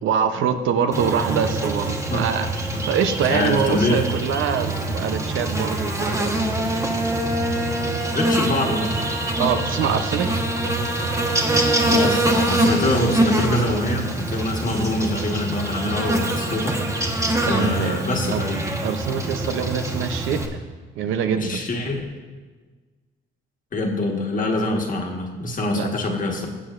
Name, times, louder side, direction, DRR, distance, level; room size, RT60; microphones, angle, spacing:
voice 1, 0.0-6.4 8.7-8.8 9.4-10.3 17.5-18.0 18.3-18.4 18.8-20.6 21.0-21.6 25.7-25.9, right 7 dB, 80° right, 8 dB, 0.7 m, -24 dB
Buzz, 0.9-20.5, right 1 dB, 15° right, 1.1 m, -24 dB
voice 2, 3.3-4.1 8.1-9.0 11.9-16.8 17.4-18.6 21.4-22.1 23.7-26.5, left 2 dB, 40° left, 1 dB, 1.4 m, -24 dB
15.5 x 7.7 x 2.5 m, 1.4 s
cardioid pair, 90°, 20 cm